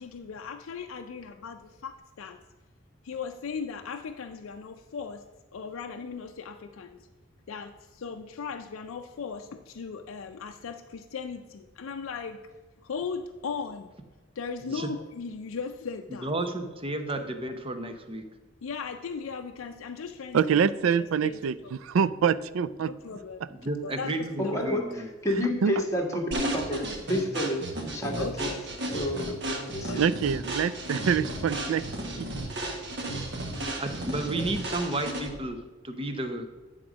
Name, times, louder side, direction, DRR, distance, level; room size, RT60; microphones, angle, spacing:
voice 1, 0.0-2.4 3.0-5.2 5.5-7.1 7.5-12.4 12.8-13.9 14.4-16.3 18.6-20.6 21.0-21.7 22.9-23.4 23.8-24.5 28.2-28.6 29.9-30.0 31.8-31.9, left 5 dB, 90° left, 5 dB, 0.4 m, -38 dB
voice 2, 16.1-18.2 23.1-23.2 23.5-25.1 33.8-35.6 35.8-36.5, right 2 dB, 25° right, 7 dB, 0.8 m, -32 dB
voice 3, 20.3-21.5 21.8-22.9 25.6-25.7 30.0-31.8 32.2-32.3, right 7 dB, 80° right, 16 dB, 0.4 m, -25 dB
voice 4, 24.4-27.6 27.9-28.5 28.8-30.0 34.3-34.5, equal, 15° left, 0 dB, 1.2 m, -30 dB
sound 1, 26.3-35.5, right 1 dB, 60° right, 1.4 m, -34 dB
9.5 x 3.8 x 6.1 m, 1.3 s
head